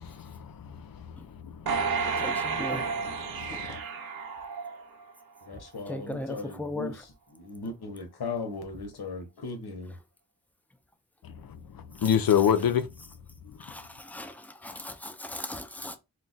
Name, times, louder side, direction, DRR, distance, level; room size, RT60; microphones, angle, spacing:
voice 1, 0.0-2.8 3.2-3.8 11.2-12.9 13.6-13.7, left 9 dB, 70° left, 0.5 m, -29 dB
sound 1, 1.7-5.1 5.6-5.7, right 5 dB, 75° right, 0.6 m, -31 dB
voice 2, 2.2-3.1 3.5-3.8 5.9-6.9 13.6-16.0, left 2 dB, 5° left, 0.4 m, -38 dB
voice 3, 5.5-10.0, left 3 dB, 85° left, 0.8 m, -38 dB
2.3 x 2.2 x 3.8 m
wide cardioid pair, 95°, 37 cm